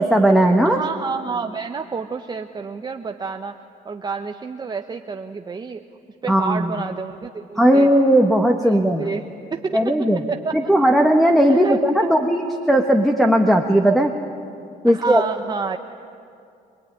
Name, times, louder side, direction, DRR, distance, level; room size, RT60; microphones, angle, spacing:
voice 1, 0.0-0.8 6.3-6.7 7.6-9.1 9.7-10.2 10.5-14.1 14.8-15.2, right 1 dB, ahead, 1 dB, 1.5 m, -17 dB
voice 2, 0.6-3.6 3.8-5.8 6.2-7.9 8.6-9.9 10.3-10.6 11.5-12.1 14.9-15.8, right 5 dB, 25° right, 5 dB, 0.9 m, -29 dB
25.0 x 21.0 x 10.0 m, 2.4 s
cardioid pair, 110°, 17 cm